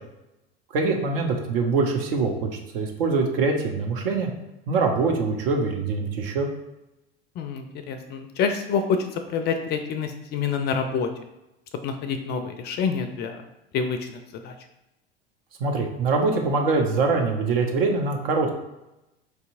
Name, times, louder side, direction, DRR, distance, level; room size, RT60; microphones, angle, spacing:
voice 1, 0.7-4.3 4.7-6.5 15.6-18.5, right 4 dB, 65° right, 2 dB, 0.8 m, -24 dB
voice 2, 7.4-11.1 11.8-13.4 13.7-14.1 14.4-14.5, left 6 dB, 35° left, 7 dB, 0.4 m, -27 dB
4.6 x 2.7 x 2.6 m, 0.94 s
figure-of-eight pair, 75°, 31 cm